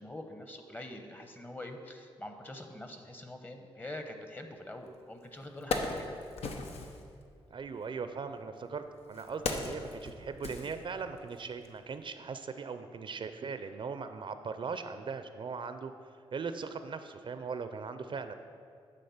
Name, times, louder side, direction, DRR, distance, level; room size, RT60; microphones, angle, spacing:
voice 1, 0.0-6.1, left 1 dB, 20° left, 5 dB, 0.9 m, -45 dB
Wood, 4.9-5.0 5.4-7.0 8.0-11.3 11.6-11.8, left 3 dB, 80° left, 0.8 m, -37 dB
voice 2, 7.5-15.9 16.3-18.3, right 5 dB, 50° right, 9 dB, 0.5 m, -39 dB
10.0 x 3.8 x 7.1 m, 2.3 s
cardioid pair, 75°, 10 cm